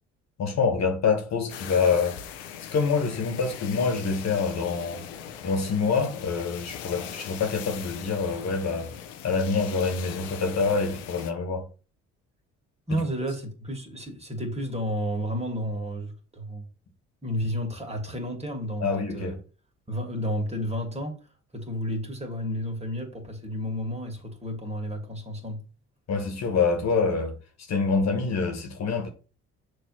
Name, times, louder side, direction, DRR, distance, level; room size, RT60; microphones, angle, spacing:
voice 1, 0.4-2.2 2.6-5.0 5.4-8.9 9.2-11.6 12.9-13.0 18.8-19.4 26.1-27.3 27.7-29.1, left 5 dB, 55° left, 1.7 m, -26 dB
sound 1, 1.5-11.3, left 9 dB, 85° left, 0.9 m, -40 dB
voice 2, 12.9-16.7 17.2-19.4 19.9-21.2 21.5-25.6, equal, 20° right, 2.4 m, -31 dB
6.4 x 3.2 x 5.6 m
hypercardioid pair, 55°, 33 cm